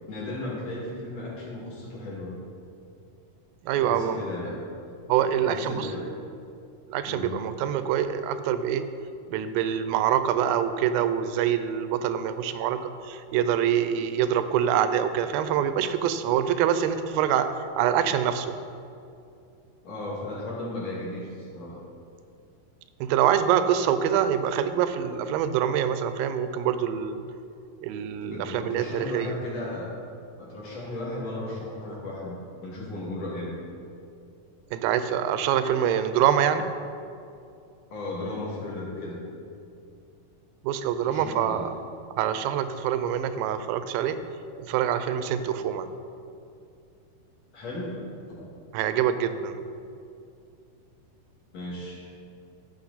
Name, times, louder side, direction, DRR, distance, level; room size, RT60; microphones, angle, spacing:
voice 1, 0.1-2.4 3.8-4.6 5.4-6.1 7.1-7.3 19.8-21.8 28.2-29.9 30.4-32.4 32.6-33.5 37.9-39.2 41.0-41.7 47.5-48.0 48.3-48.4 51.5-52.1, left 2 dB, 50° left, -6 dB, 2.8 m, -35 dB
voice 2, 3.6-4.2 5.1-5.9 6.9-8.9 9.3-17.5 17.8-18.5 23.0-27.2 27.8-29.4 34.7-36.7 40.6-41.7 42.2-44.2 44.6-45.9 48.7-49.7, right 9 dB, 90° right, 11 dB, 2.3 m, -25 dB
14.5 x 5.7 x 4.0 m, 2.5 s
omnidirectional pair, 4.1 m